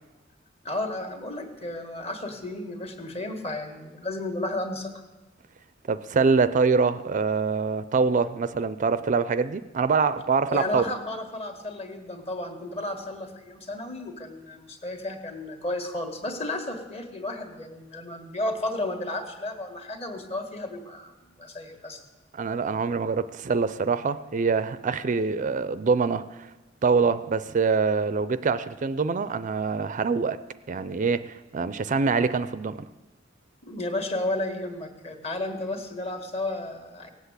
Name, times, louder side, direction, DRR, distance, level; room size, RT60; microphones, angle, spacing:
voice 1, 0.6-4.9 10.5-22.0 33.6-37.1, left 2 dB, 35° left, 1.8 m, -33 dB
voice 2, 5.9-10.8 22.3-26.5 26.8-30.4 30.7-32.9, right 5 dB, 40° right, 0.4 m, -24 dB
18.0 x 8.0 x 8.1 m
head